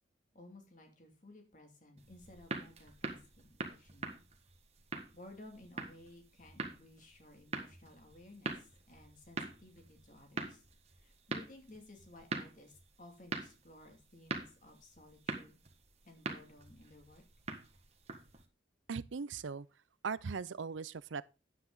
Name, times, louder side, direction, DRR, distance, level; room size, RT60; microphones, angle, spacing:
voice 1, 0.3-4.2 5.1-10.6 11.0-15.6 16.0-17.2, left 1 dB, 40° left, 2.6 m, -56 dB
sound 1, 2.0-18.4, right 3 dB, 35° right, 1.6 m, -44 dB
voice 2, 18.9-19.7 20.0-21.3, right 5 dB, 85° right, 0.5 m, -39 dB
9.9 x 8.6 x 3.9 m
head